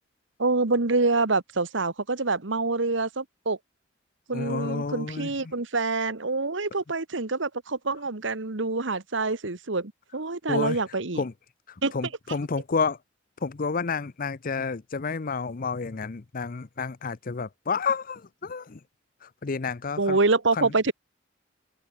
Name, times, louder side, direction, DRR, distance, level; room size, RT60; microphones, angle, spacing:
voice 1, 0.4-3.6 4.3-11.2 11.8-11.9 20.0-20.9, right 3 dB, 70° right, 1.5 m, -26 dB
voice 2, 4.3-5.3 10.5-10.8 11.2-11.3 11.9-13.0 13.4-18.8 19.2-20.2 20.5-20.7, left 4 dB, 45° left, 0.6 m, -30 dB
head